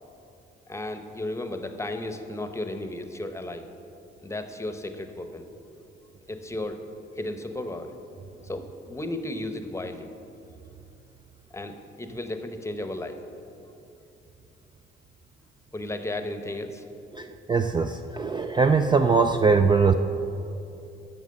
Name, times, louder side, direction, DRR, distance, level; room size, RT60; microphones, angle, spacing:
voice 1, 0.7-3.6 4.2-5.4 6.3-6.8 7.2-7.9 8.4-10.1 11.5-13.2 15.7-16.8, left 1 dB, 15° left, 7 dB, 0.9 m, -34 dB
voice 2, 17.1-19.9, right 4 dB, 25° right, 7 dB, 0.4 m, -21 dB
9.2 x 6.2 x 7.6 m, 2.7 s
cardioid pair, 90°, 20 cm